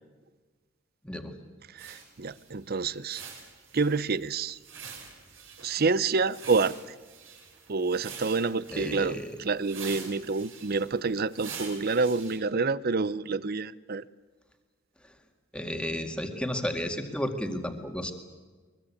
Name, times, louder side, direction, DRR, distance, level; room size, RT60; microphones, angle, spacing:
voice 1, 1.7-3.2 3.7-4.6 5.6-6.7 7.7-14.0, right 4 dB, 45° right, 18 dB, 0.6 m, -28 dB
sound 1, 1.8-12.4, right 6 dB, 65° right, 5.3 m, -46 dB
voice 2, 8.7-9.4 15.5-18.1, equal, 5° left, 5 dB, 2.1 m, -32 dB
22.5 x 22.5 x 8.6 m, 1.4 s
head